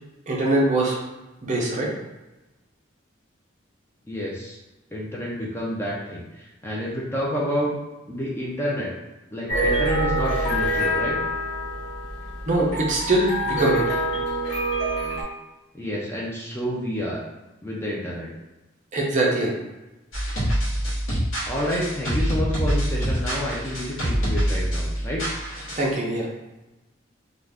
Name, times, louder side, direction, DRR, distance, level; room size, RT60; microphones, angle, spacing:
voice 1, 0.3-1.0 1.4-1.9 12.5-13.9 18.9-19.5 25.8-26.3, right 1 dB, 35° right, -3 dB, 0.5 m, -22 dB
voice 2, 4.1-4.6 4.9-7.7 8.1-8.9 9.3-11.2 15.7-17.2 17.6-18.3 21.5-25.2, equal, 10° left, -4 dB, 0.4 m, -29 dB
sound 1, 9.5-15.2, right 1 dB, 60° left, 1.2 m, -25 dB
sound 2, 20.1-25.9, equal, 75° left, 1.0 m, -26 dB
2.4 x 2.3 x 3.4 m, 1.0 s
head